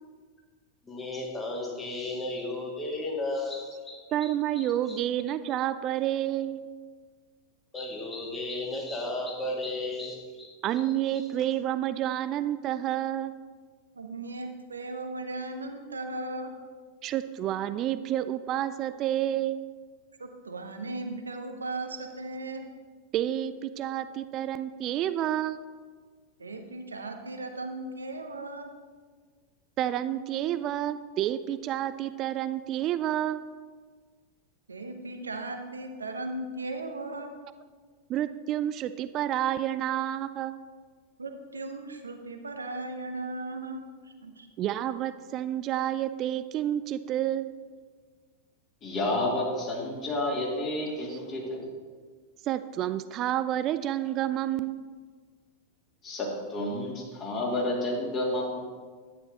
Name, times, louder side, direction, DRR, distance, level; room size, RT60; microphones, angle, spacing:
voice 1, 0.9-4.0 4.6-5.0 7.7-10.5, left 2 dB, 15° left, -1 dB, 2.0 m, -34 dB
voice 2, 4.1-6.7 10.6-13.4 17.0-19.6 23.1-25.6 29.8-33.4 38.1-40.6 44.6-47.5 51.1-51.2 52.4-54.8, right 12 dB, 35° right, 13 dB, 0.3 m, -29 dB
voice 3, 14.0-16.5 20.2-22.6 26.4-28.7 34.7-37.3 41.2-43.8 44.2-44.5, right 2 dB, 75° right, 6 dB, 0.9 m, -37 dB
voice 4, 48.8-51.7 56.0-58.6, left 1 dB, 30° left, -4 dB, 2.7 m, -30 dB
11.5 x 9.5 x 3.0 m, 1.5 s
figure-of-eight pair, 90°, 0 cm